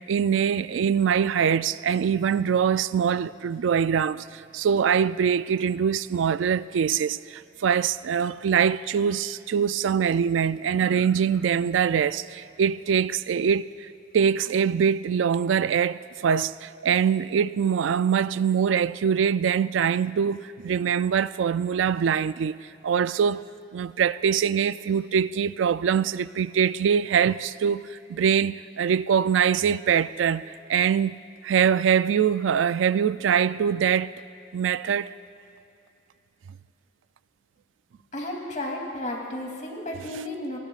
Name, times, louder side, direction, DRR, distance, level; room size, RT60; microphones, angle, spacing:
voice 1, 0.1-13.9 14.1-23.4 23.7-31.2 31.4-34.1 34.5-35.1, right 7 dB, 85° right, 0.3 m, -23 dB
voice 2, 38.1-40.6, left 1 dB, 40° left, 2.9 m, -33 dB
27.0 x 19.5 x 2.4 m
head